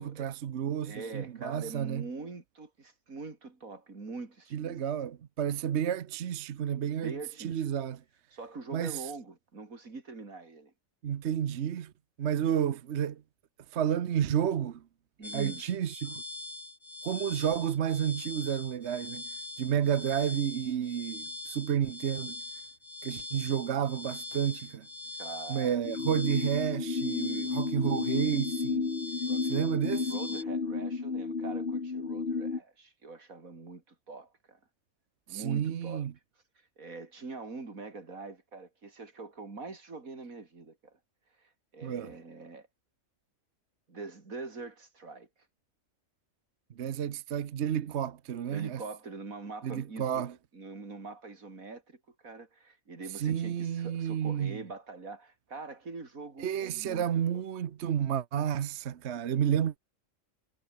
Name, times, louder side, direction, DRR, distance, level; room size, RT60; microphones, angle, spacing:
voice 1, 0.0-2.1 4.5-8.0 8.7-9.1 11.0-11.9 12.2-13.2 13.7-14.8 15.3-16.2 17.0-19.2 19.6-22.4 23.0-24.9 25.5-28.9 29.4-30.1 35.3-36.1 41.8-42.1 46.8-48.8 49.6-50.3 53.2-54.6 56.4-59.8, right 9 dB, 60° right, 1.1 m, -31 dB
voice 2, 0.8-4.9 6.9-7.7 8.3-10.7 15.2-15.6 25.2-25.8 29.2-29.7 30.0-34.6 35.3-36.1 36.8-41.0 41.4-42.7 43.9-45.3 48.5-57.1 57.3-57.4, right 3 dB, 85° right, 3.7 m, -44 dB
sound 1, 15.2-30.4, left 2 dB, 15° left, 1.6 m, -42 dB
sound 2, 25.8-32.6, left 4 dB, 45° left, 2.1 m, -32 dB
omnidirectional pair, 1.4 m